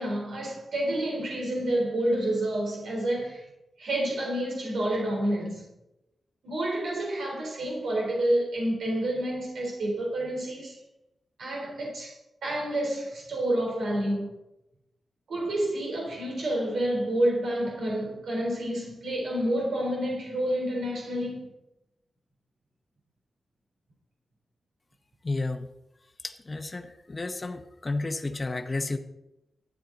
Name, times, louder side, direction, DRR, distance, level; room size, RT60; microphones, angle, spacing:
voice 1, 0.0-3.4 3.8-5.6 6.4-10.8 11.4-12.1 12.4-14.3 15.3-21.5, right 1 dB, 85° right, 3.6 m, -29 dB
voice 2, 25.2-25.7 26.2-29.0, left 2 dB, 25° left, 0.8 m, -32 dB
12.5 x 9.6 x 3.9 m
wide cardioid pair, 160°, 0 cm